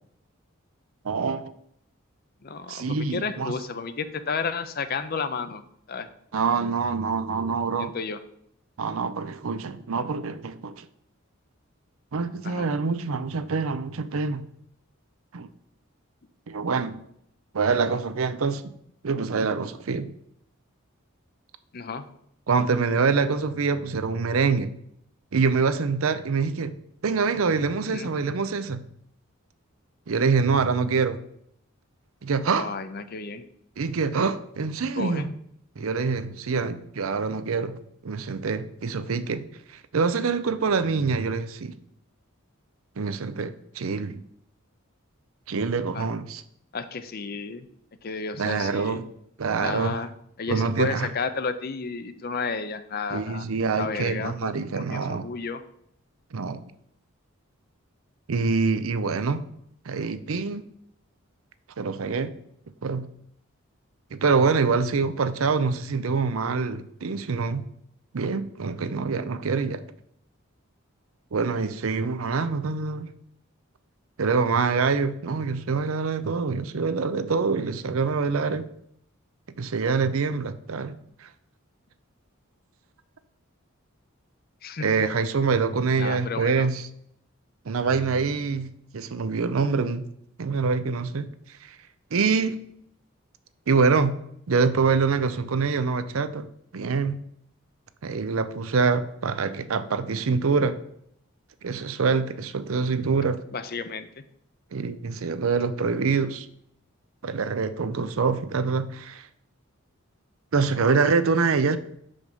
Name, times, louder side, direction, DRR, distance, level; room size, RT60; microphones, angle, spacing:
voice 1, 1.0-1.5 2.7-3.5 6.3-7.9 8.8-10.8 12.1-14.4 15.3-15.5 16.5-17.0 17.5-18.6 19.0-20.1 22.5-24.7 25.3-26.8 27.0-28.8 30.1-31.2 32.2-32.7 33.8-35.2 35.8-39.5 39.9-41.7 43.0-44.2 45.5-46.4 48.4-49.1 49.4-50.0 50.5-51.1 53.1-55.3 56.3-56.6 58.3-59.4 59.9-60.6 61.8-62.3 62.8-63.1 64.1-67.6 68.1-69.8 71.3-73.1 74.2-78.7 79.6-81.3 84.8-86.8 87.7-90.1 90.4-91.3 91.6-91.7 92.1-92.6 93.7-94.1 94.5-96.5 96.7-97.2 98.0-100.8 101.6-103.4 104.7-106.5 107.2-109.3 110.5-111.8, right 4 dB, 75° right, 12 dB, 0.6 m, -25 dB
voice 2, 2.4-5.6 5.9-6.1 7.8-8.2 12.4-12.7 21.7-22.0 27.8-28.1 32.5-33.4 35.0-35.3 45.9-46.1 46.7-47.7 48.0-49.0 49.6-50.1 50.4-53.5 53.8-55.6 84.6-85.0 86.0-86.7 103.5-104.1, left 4 dB, 45° left, 11 dB, 0.6 m, -32 dB
6.4 x 5.1 x 5.4 m, 0.71 s
head